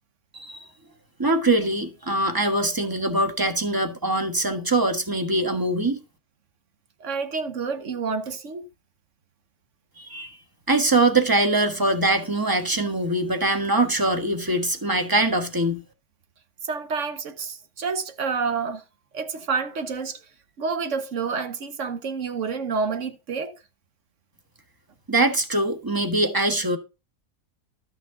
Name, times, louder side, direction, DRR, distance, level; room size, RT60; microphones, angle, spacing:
voice 1, 0.3-0.6 1.2-6.0 10.0-10.4 10.7-15.8 25.1-26.8, right 2 dB, 15° right, 1.2 m, -23 dB
voice 2, 7.0-8.7 16.6-18.8 19.1-20.2 20.6-23.5, right 5 dB, 55° right, 1.2 m, -29 dB
12.5 x 6.3 x 3.7 m
omnidirectional pair, 1.7 m